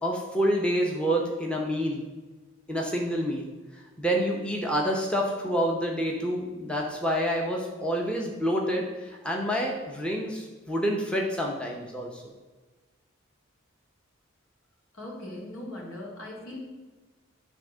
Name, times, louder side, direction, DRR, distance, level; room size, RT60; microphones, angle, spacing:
voice 1, 0.0-2.0 2.7-12.2, equal, 5° left, -1 dB, 0.8 m, -28 dB
voice 2, 14.9-16.7, left 1 dB, 80° left, -2 dB, 2.1 m, -39 dB
10.5 x 3.6 x 6.1 m, 1.3 s
head